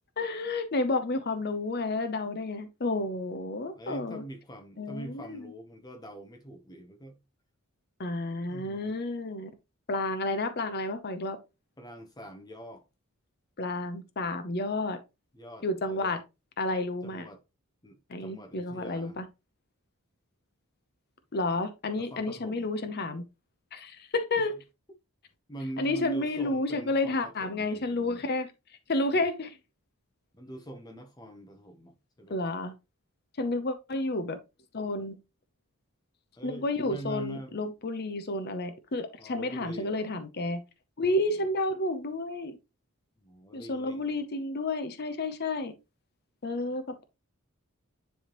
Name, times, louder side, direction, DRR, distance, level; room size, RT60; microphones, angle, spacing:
voice 1, 0.2-4.2 4.8-5.5 8.0-9.5 9.9-11.4 13.6-15.0 15.6-16.2 16.6-17.3 18.1-19.2 21.3-23.2 23.7-24.5 25.8-28.5 28.9-29.6 32.3-32.7 33.4-34.4 34.7-35.2 36.4-40.6 41.0-42.6 43.5-45.7 46.4-47.0, left 2 dB, 45° left, 0.7 m, -31 dB
voice 2, 3.7-7.2 8.5-9.0 11.8-12.8 15.3-16.2 17.0-17.4 17.8-19.2 22.0-22.7 24.4-24.5 25.5-28.2 30.3-32.4 36.3-37.7 39.2-40.0 41.3-41.5 43.2-44.2, right 1 dB, 20° left, 0.8 m, -44 dB
10.0 x 3.5 x 3.0 m
head